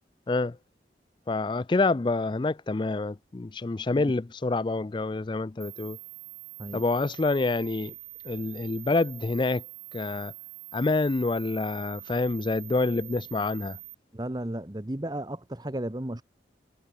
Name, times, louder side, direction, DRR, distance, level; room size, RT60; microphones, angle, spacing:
voice 1, 1.3-6.0 6.7-7.9 8.2-9.6 9.9-10.3 10.7-13.8, left 3 dB, 25° left, 0.4 m, -27 dB
sound 1, 5.6-13.9, right 16 dB, 90° right, 5.2 m, -45 dB
voice 2, 14.1-16.2, right 1 dB, 20° right, 1.0 m, -34 dB
head